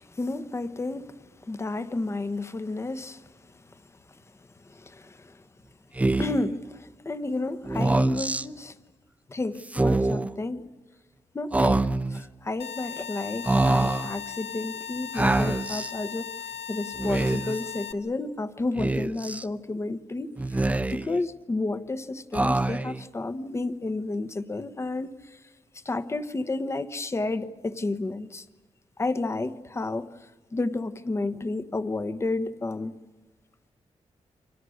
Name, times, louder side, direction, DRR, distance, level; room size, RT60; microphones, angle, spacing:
voice 1, 0.0-3.8 4.1-4.2 4.6-5.4 6.2-8.8 9.3-10.6 11.3-20.6 20.9-25.4 25.8-28.4 29.0-32.9, left 2 dB, 25° left, 1.2 m, -31 dB
Speech, 6.0-6.5 7.7-8.4 9.6-10.3 11.5-12.2 13.4-14.1 15.2-15.9 16.9-17.6 18.8-19.4 20.4-21.2 22.3-23.0, right 2 dB, 10° right, 0.7 m, -25 dB
sound 1, 12.6-17.9, left 8 dB, 65° left, 1.9 m, -38 dB
29.5 x 25.0 x 6.5 m
wide cardioid pair, 130°, 12 cm